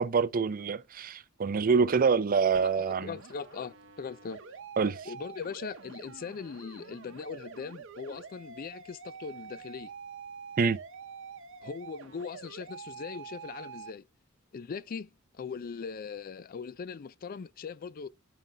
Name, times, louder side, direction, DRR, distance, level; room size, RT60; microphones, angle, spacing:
voice 1, 0.0-3.1 4.8-5.0 10.6-10.8, right 5 dB, 40° right, 0.5 m, -26 dB
sound 1, 2.5-13.9, right 6 dB, 60° right, 0.8 m, -47 dB
voice 2, 3.0-4.4 5.0-9.9 11.6-14.0 14.5-18.1, left 5 dB, 40° left, 0.4 m, -40 dB
13.0 x 5.4 x 2.3 m
head